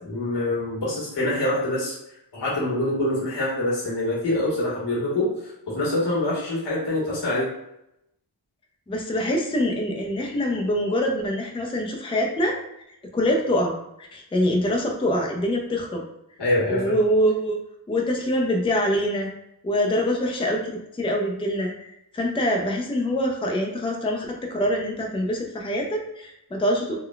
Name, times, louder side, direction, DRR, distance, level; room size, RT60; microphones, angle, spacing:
voice 1, 0.0-1.9 2.3-7.5 16.4-16.9, left 1 dB, 80° left, -6 dB, 1.5 m, -25 dB
voice 2, 8.9-12.5 13.1-13.7 14.0-16.0 16.7-17.6 17.9-19.3 19.6-27.0, equal, 15° left, 0 dB, 0.5 m, -24 dB
3.7 x 2.2 x 2.2 m, 0.81 s
cardioid pair, 80°, 41 cm